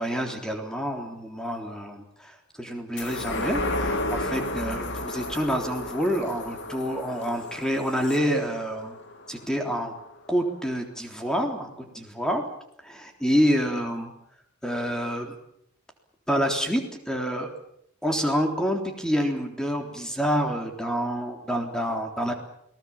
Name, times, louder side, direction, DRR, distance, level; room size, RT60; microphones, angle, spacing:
voice 1, 0.0-9.0 9.3-9.9 10.3-12.4 12.8-14.1 14.6-15.4 16.3-17.5 18.0-22.3, equal, 5° left, 4 dB, 3.6 m, -27 dB
sound 1, 3.0-9.8 10.2-10.3, left 1 dB, 55° left, 2.7 m, -32 dB
28.5 x 20.0 x 7.4 m, 0.71 s
head